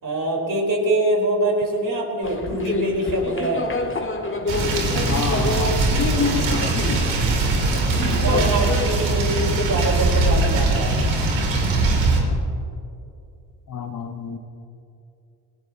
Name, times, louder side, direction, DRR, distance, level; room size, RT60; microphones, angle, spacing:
voice 1, 0.0-3.7 8.1-10.9, right 1 dB, 45° right, -1 dB, 4.5 m, -24 dB
sound 1, 2.2-8.9, left 3 dB, 25° left, 1.8 m, -27 dB
sound 2, 4.5-12.2, right 3 dB, 80° right, 3.2 m, -21 dB
voice 2, 5.1-7.2 13.7-14.4, left 5 dB, 45° left, 4 dB, 1.6 m, -31 dB
20.0 x 18.5 x 3.0 m, 2.6 s
supercardioid pair, 60°, 45 cm